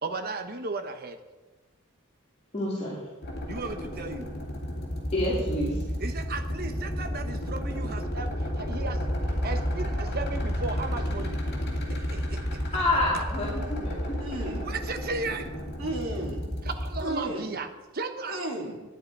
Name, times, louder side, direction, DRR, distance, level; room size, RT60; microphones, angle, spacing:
voice 1, 0.0-1.2 3.4-4.3 6.0-9.0 9.4-11.4 11.9-12.6 13.1-13.3 14.6-15.5 16.6-18.4, right 3 dB, 45° right, 1.1 m, -35 dB
voice 2, 2.5-3.0 5.1-5.8 12.7-14.0, left 1 dB, 30° left, 2.7 m, -27 dB
sound 1, 3.2-17.0, equal, 50° left, 2.6 m, -31 dB
voice 3, 14.2-14.7 15.8-16.5 17.0-17.6 18.3-18.8, right 1 dB, 80° right, 2.8 m, -33 dB
12.0 x 10.5 x 4.7 m
head